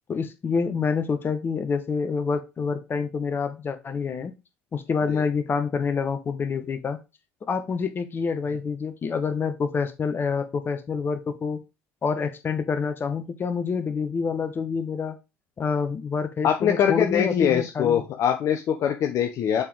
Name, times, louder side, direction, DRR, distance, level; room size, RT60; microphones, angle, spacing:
voice 1, 0.1-4.3 4.7-7.0 7.5-11.6 12.0-15.2 15.6-18.0, left 5 dB, 35° left, 8 dB, 1.4 m, -27 dB
voice 2, 16.4-19.6, left 9 dB, 50° left, 4 dB, 0.9 m, -23 dB
6.8 x 4.9 x 3.6 m, 0.26 s
figure-of-eight pair, 60°, 6 cm